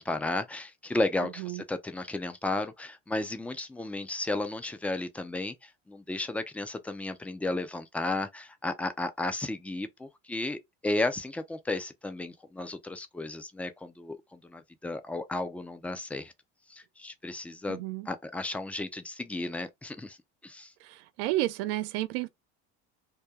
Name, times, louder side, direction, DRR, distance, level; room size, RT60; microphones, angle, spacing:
voice 1, 0.0-16.3 16.7-20.2 20.4-20.7, left 2 dB, 5° left, 0.4 m, -34 dB
voice 2, 17.7-18.1 20.8-22.3, right 16 dB, 80° right, 0.5 m, -31 dB
2.2 x 2.1 x 2.7 m
supercardioid pair, 100°, 31 cm